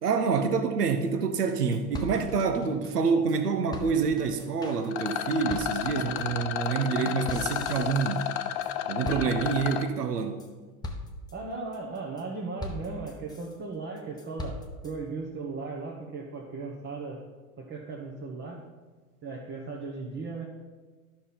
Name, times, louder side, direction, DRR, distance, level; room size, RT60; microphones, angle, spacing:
voice 1, 0.0-8.3 8.9-10.4, right 5 dB, 85° right, 0.9 m, -27 dB
sound 1, 1.1-1.2 1.4-1.5 1.7-3.4 3.7-8.7 9.0-9.8 10.2-10.5 10.8-11.3 11.7-12.2 12.6-13.5 14.0-14.9, left 2 dB, 10° left, 1.0 m, -41 dB
Rattle, 4.9-9.9, left 10 dB, 45° left, 0.7 m, -32 dB
voice 2, 11.3-14.6 14.8-17.2 17.6-18.7 19.2-20.4, right 4 dB, 25° right, 1.3 m, -37 dB
12.0 x 5.8 x 4.3 m
hypercardioid pair, 90°, 46 cm